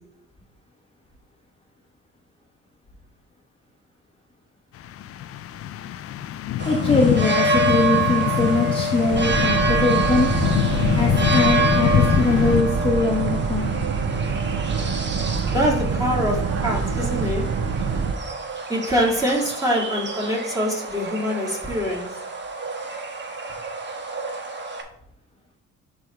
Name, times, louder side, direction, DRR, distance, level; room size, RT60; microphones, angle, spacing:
sound 1, 4.8-12.6, left 10 dB, 50° left, 0.4 m, -24 dB
voice 1, 6.6-10.3 10.9-13.8, left 2 dB, 15° left, -2 dB, 1.0 m, -22 dB
sound 2, 6.6-24.8, right 2 dB, 35° right, 1.2 m, -27 dB
Boat Water vehicle, 9.1-18.1, right 6 dB, 55° right, 0.7 m, -25 dB
voice 2, 15.5-17.5 18.7-22.2, equal, 10° right, -4 dB, 2.6 m, -24 dB
10.0 x 3.6 x 3.4 m, 0.70 s
cardioid pair, 90°, 30 cm